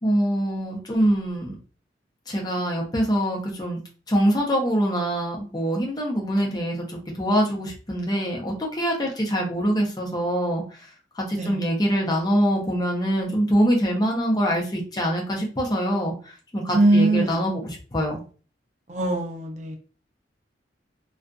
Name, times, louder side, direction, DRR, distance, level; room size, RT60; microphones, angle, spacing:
voice 1, 0.0-1.6 2.3-3.8 4.1-10.6 11.2-18.2, equal, 20° left, 0.6 m, -24 dB
voice 2, 16.7-17.4 18.9-19.8, right 2 dB, 40° right, 0.5 m, -21 dB
2.5 x 2.4 x 2.2 m
head